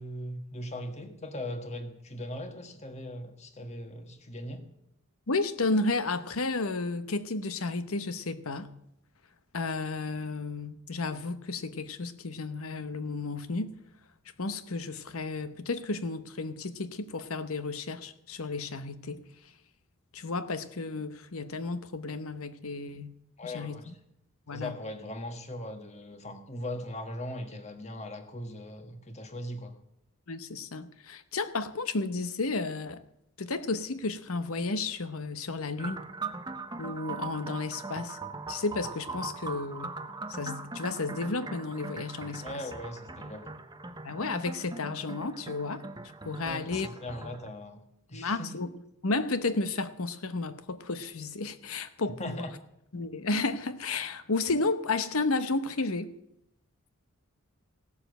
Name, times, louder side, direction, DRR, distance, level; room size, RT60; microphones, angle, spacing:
voice 1, 0.0-4.7 23.4-23.9 24.5-29.7 42.4-43.5 46.4-47.8 48.1-48.6 52.2-52.5, left 1 dB, 30° left, 1.5 m, -39 dB
voice 2, 5.3-8.7 9.5-13.7 14.4-19.2 20.1-23.1 23.4-23.9 24.5-24.7 30.3-33.0 33.4-36.0 36.8-38.2 38.5-39.9 40.3-42.6 44.0-45.9 46.2-46.9 48.1-48.7 49.0-52.5 52.9-56.1, left 3 dB, 70° left, 1.0 m, -32 dB
sound 1, 35.8-47.5, right 3 dB, 20° right, 0.6 m, -40 dB
16.5 x 7.0 x 8.0 m
head